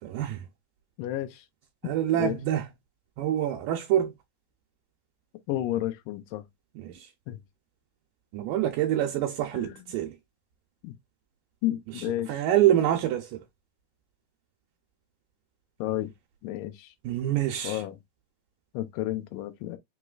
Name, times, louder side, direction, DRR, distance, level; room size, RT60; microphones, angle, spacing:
voice 1, 0.0-0.5 1.8-2.7 3.2-4.1 6.7-7.1 8.3-10.2 11.9-13.4 17.0-17.8, right 12 dB, 80° right, 2.3 m, -26 dB
voice 2, 1.0-1.4 2.2-2.4 5.5-6.5 7.3-7.4 9.6-9.7 10.8-10.9 11.6-12.3 15.8-16.1 16.4-16.9 17.6-17.9 18.7-19.8, left 14 dB, 85° left, 2.3 m, -31 dB
5.6 x 3.1 x 2.3 m
omnidirectional pair, 3.8 m